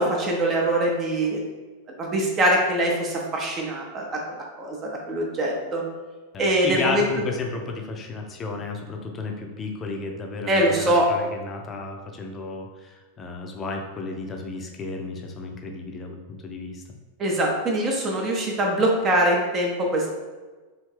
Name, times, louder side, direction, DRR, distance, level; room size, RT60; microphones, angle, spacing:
voice 1, 0.0-1.4 2.0-5.8 6.4-7.0 10.5-11.1 17.2-20.1, right 1 dB, 30° right, -1 dB, 0.6 m, -23 dB
voice 2, 6.3-16.8, left 3 dB, 25° left, 2 dB, 0.5 m, -33 dB
3.3 x 2.6 x 3.2 m, 1.3 s
figure-of-eight pair, 90°, 0 cm